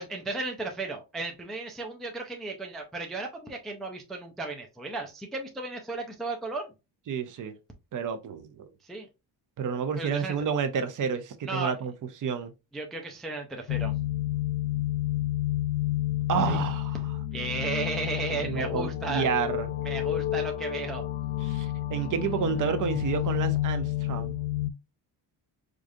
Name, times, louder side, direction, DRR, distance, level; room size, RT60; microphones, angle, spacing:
voice 1, 0.0-6.7 8.8-9.1 10.0-10.4 11.4-11.7 12.7-13.9 16.5-16.6 17.3-19.3 19.8-21.0 22.5-22.6, right 3 dB, ahead, 0.3 m, -34 dB
voice 2, 7.1-7.5 7.9-8.7 9.6-12.5 16.3-17.0 18.4-19.7 21.4-24.4, right 7 dB, 45° right, 0.6 m, -30 dB
sound 1, 13.7-24.7, left 13 dB, 85° left, 0.6 m, -30 dB
4.9 x 2.4 x 2.6 m
cardioid pair, 180°, 43 cm